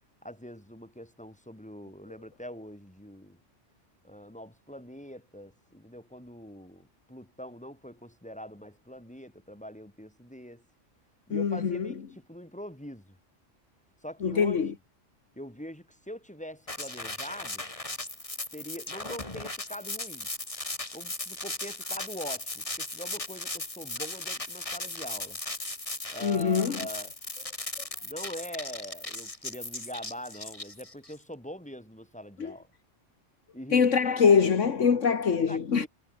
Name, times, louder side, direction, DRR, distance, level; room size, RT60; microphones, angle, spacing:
voice 1, 0.2-3.4 4.0-10.6 11.3-13.2 14.0-14.7 15.3-17.7 18.5-20.3 20.9-25.4 26.1-27.1 28.0-32.7 33.5-34.0 35.5-35.9, equal, 5° left, 5.9 m, -43 dB
voice 2, 11.3-11.9 14.2-14.7 26.2-26.8 32.4-32.5 33.7-35.9, left 6 dB, 75° left, 1.8 m, -24 dB
sound 1, 16.7-31.1, left 2 dB, 25° left, 2.9 m, -37 dB
omnidirectional pair, 1.3 m